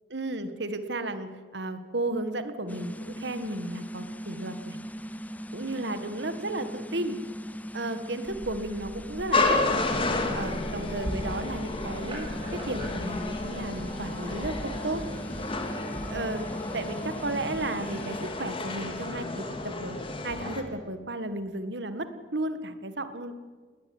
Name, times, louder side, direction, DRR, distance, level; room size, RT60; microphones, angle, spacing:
voice 1, 0.1-4.8 5.5-7.2 7.7-9.6 10.3-15.0 16.1-16.4 16.7-20.0 20.2-23.3, right 2 dB, 70° right, 10 dB, 1.8 m, -34 dB
sound 1, 2.7-18.3, left 1 dB, 10° left, 0.7 m, -39 dB
sound 2, 8.3-14.5, equal, 30° right, 6.7 m, -42 dB
sound 3, 9.3-20.6, left 2 dB, 30° left, 2.6 m, -31 dB
19.5 x 19.5 x 9.6 m, 1.4 s
head